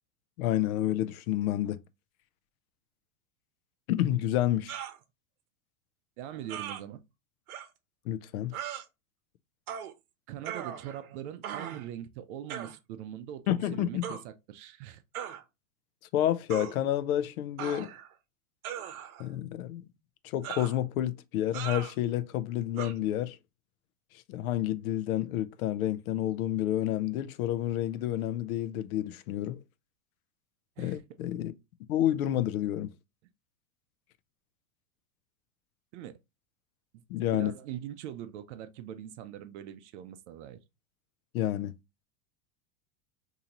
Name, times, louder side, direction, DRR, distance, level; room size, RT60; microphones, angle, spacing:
voice 1, 0.4-1.8 3.9-4.8 8.1-8.5 13.5-14.1 16.1-17.9 19.2-19.9 20.2-23.4 24.3-29.6 30.8-31.5 31.9-32.9 37.1-37.5 41.3-41.7, left 12 dB, 80° left, 0.6 m, -29 dB
sound 1, 4.7-5.0 6.5-6.8 7.5-7.7 8.5-8.8 9.7-9.9 10.4-11.1 11.4-11.9 12.5-12.8 14.0-14.2 15.1-15.4 16.5-16.7 17.6-18.1 18.6-19.3 20.4-20.8 21.5-21.9 22.8-22.9, right 9 dB, 85° right, 0.8 m, -38 dB
voice 2, 6.2-7.0 10.3-15.0 30.8-31.0 35.9-36.2 37.3-40.6, right 11 dB, 55° right, 0.5 m, -42 dB
3.9 x 2.8 x 2.8 m
supercardioid pair, 145°, 43 cm